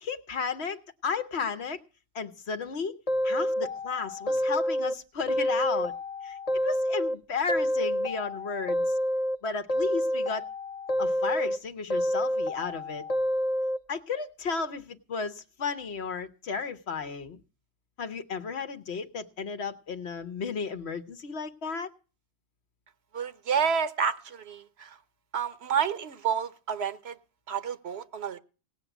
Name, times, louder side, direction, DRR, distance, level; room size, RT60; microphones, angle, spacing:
voice 1, 0.0-1.8 2.1-3.0 3.2-5.9 6.2-8.8 9.4-10.5 11.0-13.0 13.9-17.4 18.0-21.9, left 5 dB, 80° left, 9 dB, 1.2 m, -33 dB
sound 1, 3.1-5.0 5.3-7.2 7.5-9.4 9.7-11.6 11.9-13.8, equal, 40° left, 1.0 m, -28 dB
voice 2, 23.1-25.0 25.3-27.2 27.5-28.4, right 7 dB, 75° right, 13 dB, 1.2 m, -29 dB
18.0 x 6.0 x 9.1 m, 0.36 s
omnidirectional pair, 1.1 m